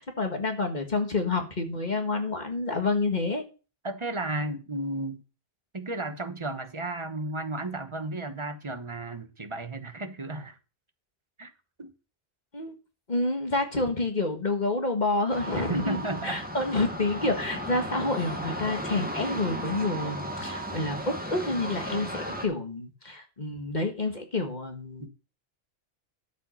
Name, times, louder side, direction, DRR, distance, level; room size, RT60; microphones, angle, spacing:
voice 1, 0.0-3.4 12.5-12.7 13.1-25.1, left 2 dB, 45° left, 1.8 m, -28 dB
voice 2, 3.8-5.2 5.7-10.6 11.4-11.5 11.8-11.9 15.6-16.4 25.0-25.1, right 2 dB, 30° right, 1.1 m, -33 dB
sound 1, 15.3-22.5, equal, 10° right, 1.6 m, -35 dB
12.5 x 5.5 x 5.6 m
omnidirectional pair, 1.1 m